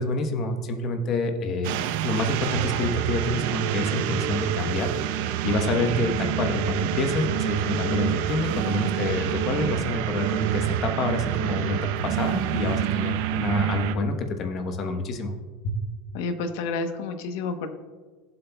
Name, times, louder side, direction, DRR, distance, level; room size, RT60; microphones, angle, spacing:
voice 1, 0.0-1.7 2.0-4.9 5.4-11.8 12.0-15.3 15.6-15.7, left 2 dB, 35° left, 6 dB, 1.0 m, -27 dB
sound 1, 1.6-14.0, right 11 dB, 65° right, 0.6 m, -27 dB
voice 2, 16.1-17.7, left 4 dB, 70° left, 7 dB, 1.0 m, -30 dB
16.0 x 7.9 x 2.3 m, 1.4 s
supercardioid pair, 155°, 0 cm